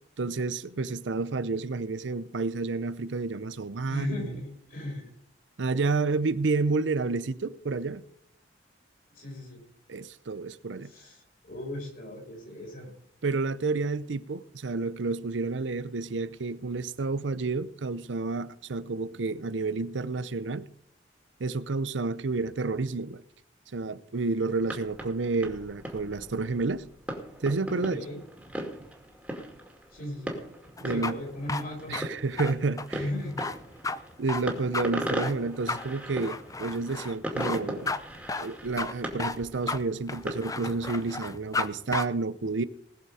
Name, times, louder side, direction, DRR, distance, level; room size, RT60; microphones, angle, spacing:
voice 1, 0.2-4.3 5.6-8.0 9.9-10.9 13.2-20.7 21.4-23.2 23.7-26.9 27.4-28.0 30.8-31.2 31.9-33.0 34.2-38.0 38.4-42.6, right 3 dB, 80° right, 0.7 m, -30 dB
voice 2, 3.9-5.1 9.1-9.6 10.8-12.9 27.8-28.2 29.9-30.4 30.8-32.1 32.9-33.4, left 1 dB, 50° left, 5.1 m, -37 dB
sound 1, 24.5-40.9, equal, 5° right, 2.3 m, -39 dB
sound 2, 30.8-41.7 41.9-42.1, left 3 dB, 20° left, 0.6 m, -33 dB
20.0 x 6.9 x 4.9 m
head